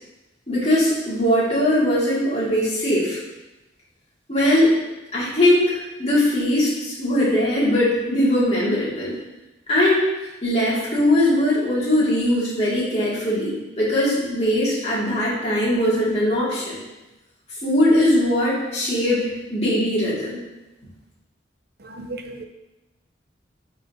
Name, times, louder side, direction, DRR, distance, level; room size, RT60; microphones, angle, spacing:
voice 1, 0.5-3.2 4.3-4.8 5.1-9.2 9.7-10.1 10.4-16.7 17.6-20.4, left 1 dB, 35° left, -8 dB, 2.2 m, -20 dB
voice 2, 21.8-22.4, right 2 dB, 55° right, 5 dB, 0.6 m, -35 dB
10.5 x 4.0 x 2.7 m, 1.0 s
head